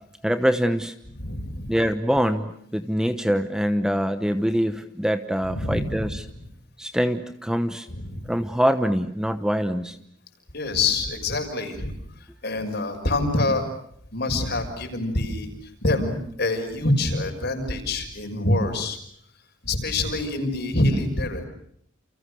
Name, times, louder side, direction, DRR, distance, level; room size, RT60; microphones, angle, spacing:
voice 1, 0.2-0.9 1.7-6.2 6.8-7.9 8.3-10.0, equal, 5° right, 9 dB, 1.1 m, -24 dB
voice 2, 1.2-1.8 5.4-6.0 6.3-6.4 7.9-8.2 10.5-11.9 12.4-13.7 14.1-19.0 19.6-21.5, left 2 dB, 55° left, 5 dB, 6.2 m, -26 dB
29.5 x 29.5 x 6.5 m, 0.68 s
head